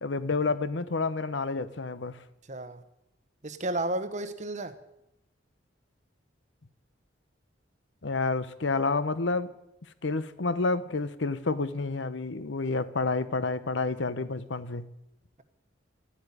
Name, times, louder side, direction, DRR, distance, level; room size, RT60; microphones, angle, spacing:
voice 1, 0.0-2.2 8.0-9.5 10.0-14.9, left 3 dB, 70° left, 0.9 m, -29 dB
voice 2, 2.5-2.8 3.4-4.7, right 1 dB, 40° right, 1.1 m, -32 dB
12.5 x 8.5 x 9.8 m
head